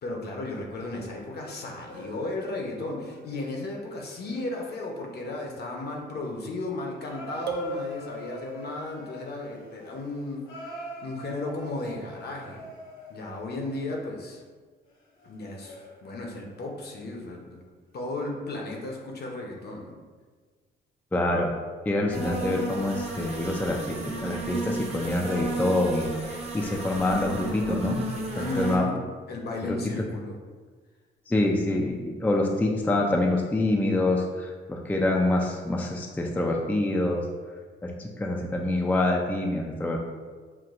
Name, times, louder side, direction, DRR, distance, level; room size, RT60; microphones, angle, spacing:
voice 1, 0.0-10.5 11.0-12.6 13.1-14.4 15.2-17.6 17.9-19.9 28.3-29.0 29.3-30.4, left 2 dB, 55° left, 1 dB, 0.8 m, -34 dB
sound 1, 0.8-6.1 7.0-13.6 14.9-16.5 16.9-17.2 17.9-18.0, equal, 75° left, 1.0 m, -46 dB
sound 2, 7.5-9.0, right 2 dB, 55° right, 0.4 m, -34 dB
voice 2, 21.1-21.5 21.9-26.1 26.5-28.1 28.6-28.9 29.6-29.8 31.3-37.3 37.8-40.0, left 2 dB, 10° left, 0 dB, 0.4 m, -26 dB
sound 3, 22.1-28.8, right 2 dB, 30° right, 0.8 m, -33 dB
5.8 x 2.2 x 2.5 m, 1.5 s
cardioid pair, 90°, 20 cm